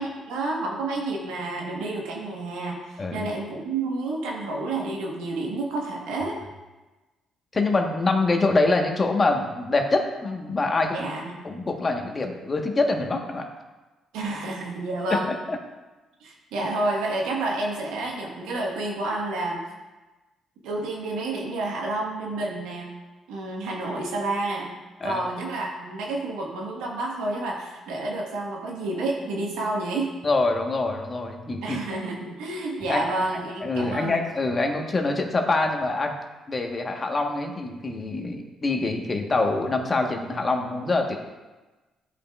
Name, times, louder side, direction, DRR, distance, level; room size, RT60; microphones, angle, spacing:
voice 1, 0.0-6.4 10.9-11.4 14.1-15.3 16.2-19.6 20.6-22.9 23.3-24.7 25.0-30.2 31.6-34.2, right 2 dB, 85° right, -2 dB, 1.4 m, -29 dB
voice 2, 3.0-3.3 7.5-11.1 11.4-13.5 15.1-15.2 15.5-15.6 25.0-25.2 30.2-31.8 32.9-33.0 33.6-36.2 36.5-41.1, left 3 dB, 35° left, 3 dB, 1.3 m, -25 dB
13.0 x 5.4 x 2.4 m, 1.2 s
supercardioid pair, 65°, 0 cm